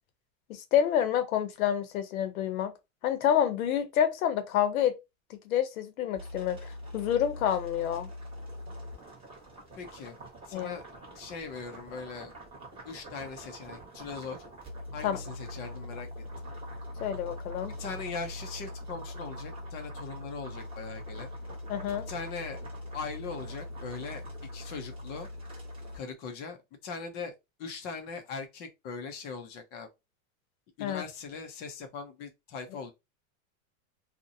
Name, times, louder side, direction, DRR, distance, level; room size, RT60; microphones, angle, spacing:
voice 1, 0.5-2.7 3.0-5.0 5.3-8.1 10.5-10.8 15.0-15.2 17.0-17.7 21.7-22.1 30.8-31.0, left 9 dB, 90° left, 0.7 m, -28 dB
sound 1, 6.2-26.0, left 1 dB, 15° right, 0.9 m, -42 dB
voice 2, 9.8-10.2 10.5-10.8 11.1-12.3 12.9-14.4 14.9-16.1 16.4-16.5 17.8-21.3 22.1-22.6 22.9-24.2 24.5-25.3 25.9-26.6 26.8-29.9 30.8-32.9, left 5 dB, 25° left, 0.3 m, -40 dB
2.6 x 2.0 x 2.6 m
supercardioid pair, 135°, 41 cm